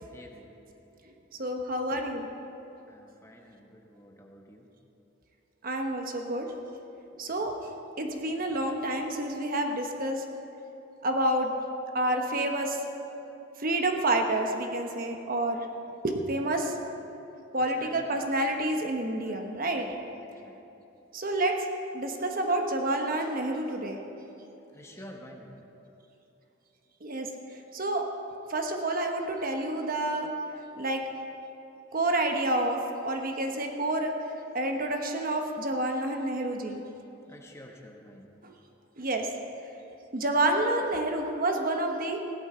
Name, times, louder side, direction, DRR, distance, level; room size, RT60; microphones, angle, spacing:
voice 1, 0.1-0.6 2.9-4.7 17.6-18.2 19.2-19.4 20.1-20.6 24.7-25.6 37.3-38.3, equal, 15° left, 1 dB, 1.1 m, -49 dB
voice 2, 1.4-2.3 5.6-6.5 7.1-7.7 8.0-10.2 11.0-11.6 11.9-12.8 13.6-15.7 16.0-16.8 17.5-19.9 21.1-21.7 21.9-24.0 27.0-27.3 27.7-28.0 28.5-30.3 30.7-31.0 31.9-34.1 34.5-36.8 38.4-38.5 39.0-39.3 40.1-42.2, right 1 dB, 50° right, 3 dB, 1.1 m, -29 dB
16.0 x 12.0 x 4.4 m, 2.9 s
head